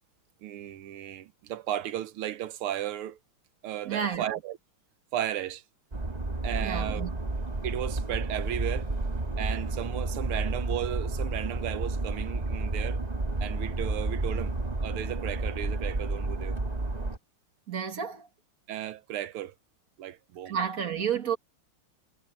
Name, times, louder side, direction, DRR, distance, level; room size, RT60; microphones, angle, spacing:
voice 1, 0.4-3.2 3.6-4.6 5.1-5.6 6.4-7.1 7.6-8.9 9.4-13.0 13.4-14.6 14.8-16.6 18.7-19.6 20.0-20.6, right 12 dB, 85° right, 1.8 m, -35 dB
voice 2, 3.9-4.3 6.6-7.1 17.7-18.3 20.5-21.4, right 7 dB, 40° right, 2.0 m, -31 dB
sound 1, 5.9-17.2, right 2 dB, 20° right, 1.5 m, -31 dB
omnidirectional pair, 2.4 m